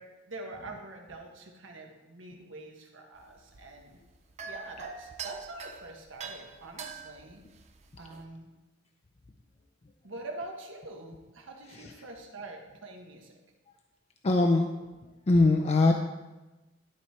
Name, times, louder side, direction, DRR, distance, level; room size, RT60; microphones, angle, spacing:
voice 1, 0.0-4.0 4.5-7.4 8.0-8.5 10.0-13.3, right 2 dB, 75° right, 1 dB, 1.4 m, -45 dB
sound 1, 3.2-8.2, right 5 dB, 35° right, 0.6 m, -44 dB
voice 2, 14.2-14.7 15.0-15.9, left 2 dB, 35° left, 3 dB, 0.5 m, -23 dB
11.5 x 4.4 x 4.7 m, 1.1 s
head